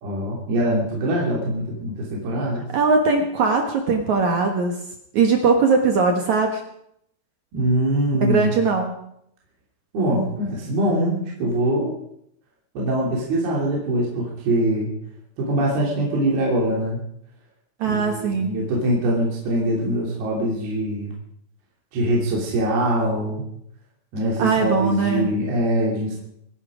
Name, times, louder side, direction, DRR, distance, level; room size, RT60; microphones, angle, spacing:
voice 1, 0.0-2.6 7.5-8.6 9.9-11.9 12.7-14.9 15.4-17.0 17.8-21.1 21.9-23.5 24.1-26.2, right 1 dB, 55° right, -3 dB, 4.8 m, -23 dB
voice 2, 2.7-4.7 5.1-6.6 8.2-8.9 17.8-18.6 24.4-25.3, right 4 dB, 80° right, 3 dB, 1.6 m, -20 dB
26.0 x 11.0 x 5.1 m, 0.74 s
omnidirectional pair, 5.8 m